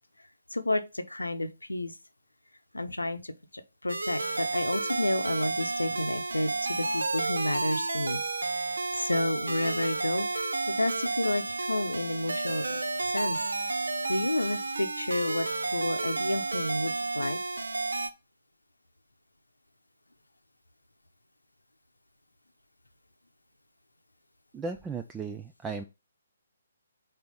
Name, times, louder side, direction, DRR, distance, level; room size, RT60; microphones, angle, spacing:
voice 1, 0.5-1.9 2.7-8.2 9.0-13.4 14.1-15.5 15.7-17.4, left 1 dB, 75° left, 0.7 m, -31 dB
sound 1, 3.9-18.1, right 3 dB, 65° right, 0.7 m, -31 dB
voice 2, 24.5-25.8, right 4 dB, 10° right, 0.3 m, -36 dB
4.4 x 4.2 x 5.1 m
figure-of-eight pair, 135°, 0 cm